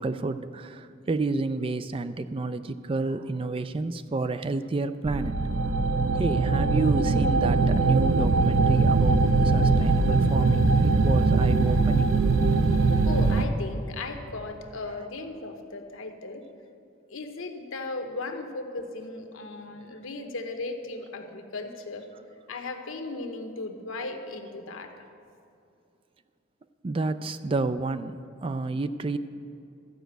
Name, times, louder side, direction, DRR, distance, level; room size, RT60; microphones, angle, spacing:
voice 1, 0.0-5.4 6.2-12.2 26.8-28.2 28.4-29.2, right 3 dB, 25° right, 12 dB, 0.3 m, -30 dB
sound 1, 5.0-13.4, right 3 dB, 80° right, 0.5 m, -22 dB
voice 2, 13.0-16.4 17.1-22.1 22.5-24.9, left 3 dB, 90° left, 5 dB, 1.0 m, -36 dB
13.5 x 5.1 x 8.0 m, 2.6 s
head